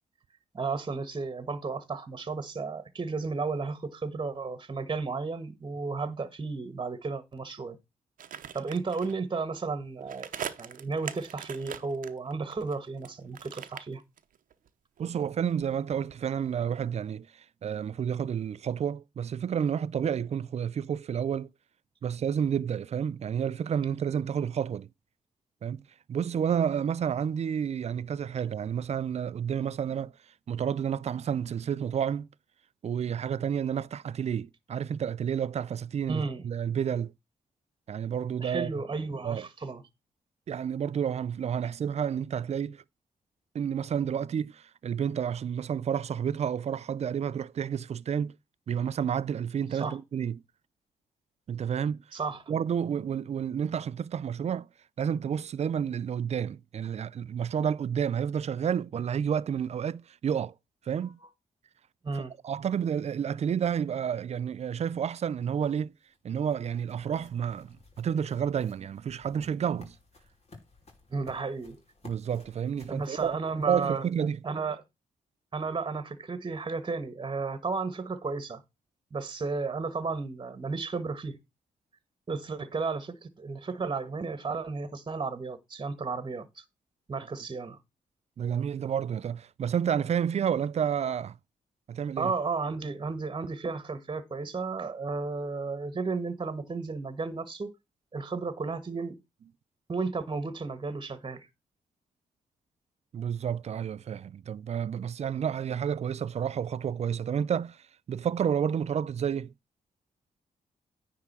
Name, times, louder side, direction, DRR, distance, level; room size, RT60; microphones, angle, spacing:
voice 1, 0.5-7.8 8.5-10.3 10.6-14.0 36.1-36.4 38.4-39.8 49.7-50.0 52.1-52.4 61.0-61.1 62.0-62.3 71.1-71.8 72.9-74.1 74.4-74.8 75.5-78.6 79.1-81.4 82.3-86.6 87.1-87.8 92.2-97.7 98.1-99.2 99.9-101.5, right 4 dB, 35° right, 1.3 m, -33 dB
sound 1, 8.2-9.2 10.0-13.1 13.3-14.7 15.0-16.6 16.9-17.0, right 9 dB, 75° right, 0.8 m, -41 dB
voice 2, 15.0-21.5 22.0-24.9 25.6-25.8 26.1-30.1 30.5-32.3 32.8-37.1 37.9-38.7 39.2-39.4 40.5-42.8 43.5-48.3 48.7-50.4 51.5-52.0 52.5-54.7 55.0-60.5 60.9-61.2 62.1-65.9 66.2-69.9 72.0-73.3 73.6-74.4 88.4-91.4 91.9-92.3 103.1-109.5, right 8 dB, 50° right, 0.4 m, -30 dB
sound 2, 65.7-74.2, left 3 dB, 50° left, 3.0 m, -56 dB
9.7 x 3.6 x 6.1 m
cardioid pair, 75°, 14 cm